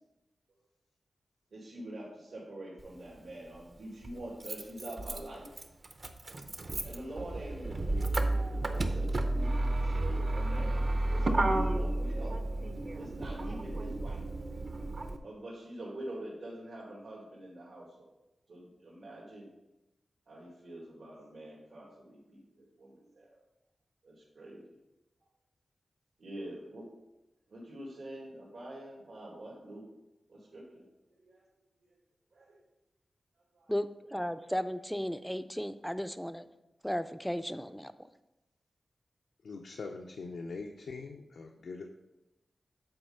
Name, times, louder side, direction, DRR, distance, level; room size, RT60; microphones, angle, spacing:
voice 1, 1.5-5.5 6.8-10.8 11.1-14.2 15.2-18.1 18.5-19.5 20.3-23.4 24.0-24.8 26.2-26.9 27.5-29.8 30.3-30.8 31.2-31.4 32.3-32.6 33.5-33.7, right 1 dB, 80° right, -6 dB, 2.0 m, -45 dB
Motor vehicle (road), 2.8-2.9 4.0-15.2, right 2 dB, 45° right, 0.7 m, -32 dB
voice 2, 33.7-36.5 36.8-37.9, equal, ahead, 11 dB, 0.4 m, -35 dB
voice 3, 39.4-41.9, left 4 dB, 85° left, 1 dB, 0.6 m, -42 dB
7.8 x 4.3 x 5.5 m, 0.95 s
wide cardioid pair, 110°, 0 cm